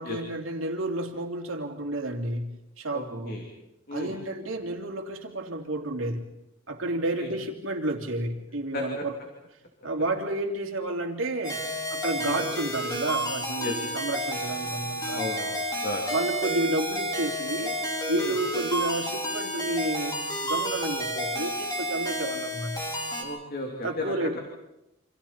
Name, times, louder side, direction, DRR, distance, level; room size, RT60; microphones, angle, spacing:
voice 1, 0.0-3.4 3.9-6.3 6.7-9.2 9.8-11.6 11.9-15.2 16.1-17.8 18.1-20.2 20.4-22.8 23.8-24.4, right 2 dB, 80° right, 2 dB, 3.0 m, -31 dB
voice 2, 2.9-3.4 3.9-4.1 7.2-7.3 8.7-9.0 12.2-12.4 13.6-13.7 15.1-16.0 18.1-18.3 23.2-24.4, left 2 dB, 50° left, 1 dB, 2.9 m, -34 dB
sound 1, 11.4-23.2, equal, 20° left, 4.4 m, -31 dB
29.0 x 26.5 x 4.4 m, 0.89 s
head